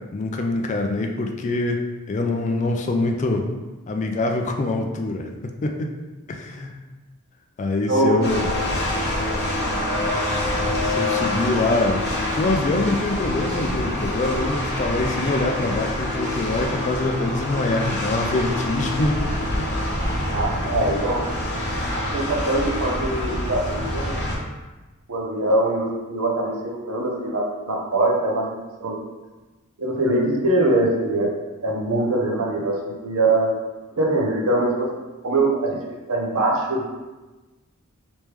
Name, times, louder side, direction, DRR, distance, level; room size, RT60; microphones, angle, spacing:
voice 1, 0.1-1.8 2.1-3.5 3.9-5.9 6.3-6.7 7.6-8.5 10.8-19.7, left 2 dB, 35° left, 3 dB, 0.3 m, -24 dB
voice 2, 7.9-8.3 20.3-21.3 21.9-24.2 25.1-28.5 28.8-29.0 29.8-31.3 31.6-33.5 34.0-34.9 35.2-35.8 36.1-36.9, right 2 dB, 75° right, -1 dB, 0.8 m, -22 dB
sound 1, 8.2-24.3, left 1 dB, 50° left, 0.9 m, -26 dB
3.1 x 3.1 x 3.3 m, 1.2 s
head